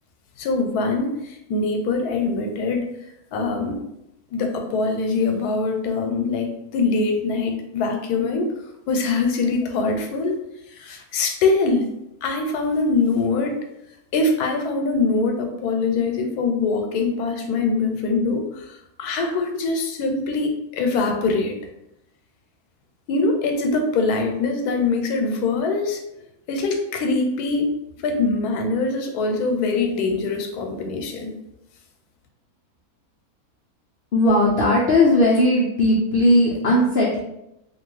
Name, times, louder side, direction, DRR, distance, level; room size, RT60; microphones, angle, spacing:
voice 1, 0.4-2.9 3.3-3.8 4.3-8.5 8.9-10.3 10.7-11.9 12.2-13.5 14.1-21.6 23.1-26.0 26.5-27.7 28.0-31.3, left 3 dB, 90° left, 4 dB, 1.1 m, -23 dB
voice 2, 34.1-37.2, left 1 dB, 70° left, -4 dB, 0.5 m, -17 dB
2.9 x 2.4 x 3.1 m, 0.84 s
omnidirectional pair, 1.6 m